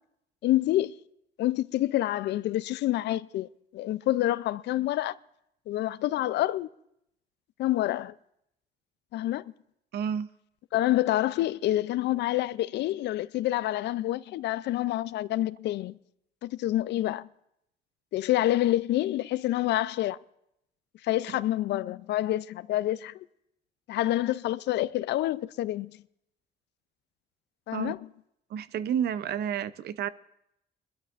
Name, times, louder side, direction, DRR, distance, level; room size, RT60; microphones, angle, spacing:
voice 1, 0.4-1.0 1.4-5.1 5.7-6.7 7.6-8.1 9.1-9.5 10.7-16.0 16.4-17.3 18.1-20.2 21.0-23.1 23.9-26.0 27.7-28.0, left 14 dB, 80° left, 0.4 m, -27 dB
voice 2, 9.9-10.3 27.7-27.9 28.5-30.1, right 8 dB, 70° right, 0.6 m, -30 dB
23.0 x 12.5 x 2.5 m
cardioid pair, 115°, 18 cm